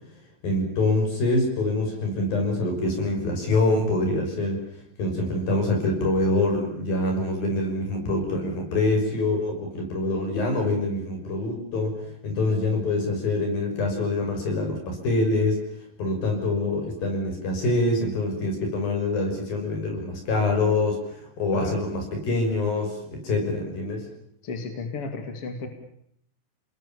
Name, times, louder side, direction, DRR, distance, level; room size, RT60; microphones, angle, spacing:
voice 1, 0.4-4.6 5.0-15.6 16.0-24.1, left 2 dB, 55° left, 3 dB, 7.6 m, -25 dB
voice 2, 24.4-25.7, left 4 dB, 40° left, 6 dB, 2.9 m, -33 dB
29.5 x 20.5 x 7.2 m, 0.71 s
omnidirectional pair, 5.0 m